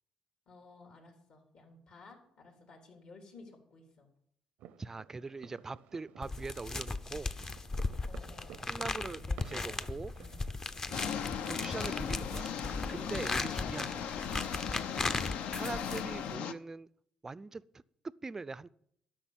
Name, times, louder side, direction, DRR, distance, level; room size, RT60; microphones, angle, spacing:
voice 1, 0.5-4.1 8.1-9.8 10.2-10.4 13.5-13.8 14.9-15.2, left 3 dB, 65° left, 2 dB, 3.7 m, -55 dB
sound 1, 4.6-11.5, right 10 dB, 85° right, 0.6 m, -55 dB
voice 2, 4.8-7.4 8.7-10.1 11.5-12.6 12.9-14.0 15.5-16.9 17.2-18.7, right 3 dB, 20° right, 19 dB, 0.4 m, -42 dB
sound 2, 6.2-16.4, left 3 dB, 25° left, 0.6 m, -37 dB
sound 3, 10.9-16.5, left 8 dB, 80° left, 0.7 m, -38 dB
12.5 x 5.9 x 9.0 m, 0.70 s
cardioid pair, 120°, 2 cm